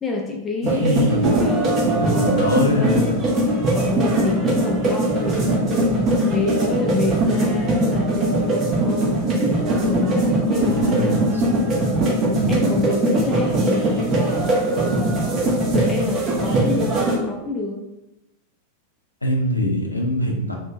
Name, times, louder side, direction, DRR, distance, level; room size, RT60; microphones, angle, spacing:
voice 1, 0.0-9.3 9.8-10.2 10.5-11.3 11.8-12.1 12.5-17.8, left 2 dB, 20° left, 0 dB, 0.3 m, -28 dB
voice 2, 0.6-1.4 1.9-3.3 10.5-11.9 12.3-12.6 19.2-20.6, left 1 dB, 85° left, 1 dB, 0.4 m, -24 dB
sound 1, 0.6-17.2, right 1 dB, 35° right, 0.6 m, -20 dB
2.5 x 2.1 x 2.4 m, 0.92 s
figure-of-eight pair, 90°, 0 cm